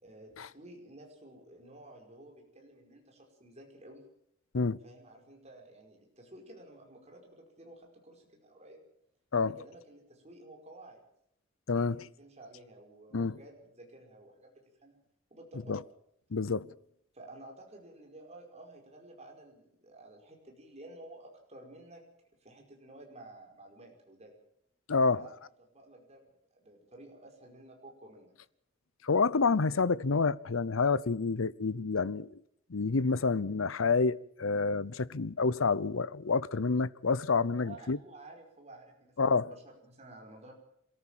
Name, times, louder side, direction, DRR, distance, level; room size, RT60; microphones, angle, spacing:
voice 1, 0.0-4.0 4.8-8.8 9.3-11.0 11.7-11.9 12.2-15.0 15.3-15.8 17.1-22.0 22.4-24.3 25.0-25.3 25.6-26.3 26.5-28.3 37.6-40.5, right 1 dB, 35° right, 5.1 m, -52 dB
voice 2, 11.7-12.1 13.1-13.4 15.7-15.8 16.3-16.7 24.9-25.3 29.0-32.4 32.7-38.0 39.2-39.5, left 4 dB, 90° left, 0.7 m, -28 dB
26.5 x 14.0 x 7.4 m
head